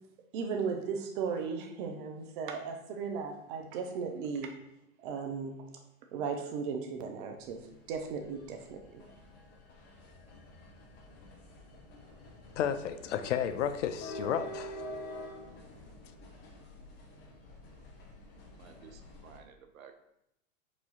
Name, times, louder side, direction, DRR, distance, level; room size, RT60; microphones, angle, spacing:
voice 1, 0.3-4.5 5.0-5.7 6.1-9.1, right 5 dB, 40° right, 0.5 m, -36 dB
sound 1, 7.4-19.4, left 1 dB, 25° left, 0.7 m, -47 dB
voice 2, 12.6-14.8, left 9 dB, 60° left, 0.5 m, -32 dB
voice 3, 18.5-20.0, right 6 dB, 70° right, 0.7 m, -54 dB
4.8 x 2.7 x 3.8 m
figure-of-eight pair, 105°, 42 cm